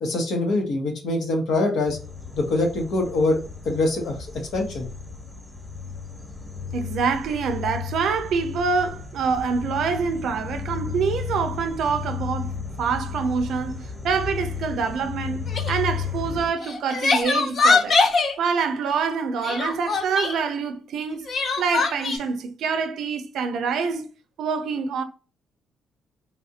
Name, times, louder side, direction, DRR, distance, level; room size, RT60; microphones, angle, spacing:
voice 1, 0.0-2.0 2.3-4.2 4.5-4.9, left 2 dB, 75° left, 1.1 m, -24 dB
sound 1, 1.9-16.5, left 6 dB, 5° left, 1.3 m, -34 dB
voice 2, 6.7-18.0 18.4-21.3 21.6-24.1 24.4-25.0, right 5 dB, 75° right, 0.5 m, -26 dB
Crying sobbing, 15.5-15.8 16.6-18.3 19.4-20.4 21.3-22.2, left 4 dB, 50° left, 0.6 m, -22 dB
3.4 x 2.5 x 2.7 m
cardioid pair, 90°, 0 cm